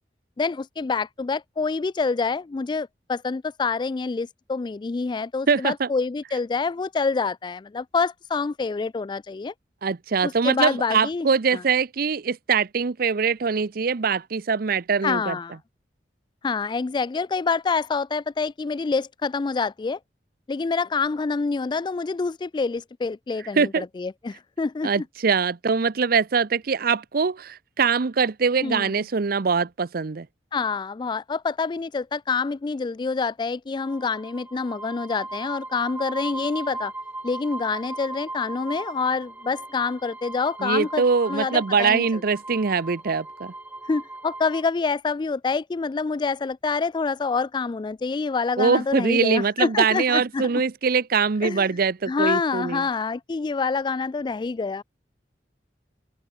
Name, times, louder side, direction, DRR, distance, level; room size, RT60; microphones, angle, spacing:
voice 1, 0.4-9.5 10.2-11.6 15.0-15.6 16.4-20.0 20.5-24.9 28.6-28.9 30.5-36.9 37.2-42.1 43.8-50.5 51.4-51.7 52.1-54.8, left 4 dB, 25° left, 0.3 m, -27 dB
voice 2, 5.5-5.9 9.8-15.3 23.6-23.8 24.8-30.3 40.6-43.5 48.6-52.8, right 5 dB, 55° right, 0.6 m, -23 dB
sound 1, 33.8-44.6, right 2 dB, 10° right, 1.2 m, -38 dB
open air
head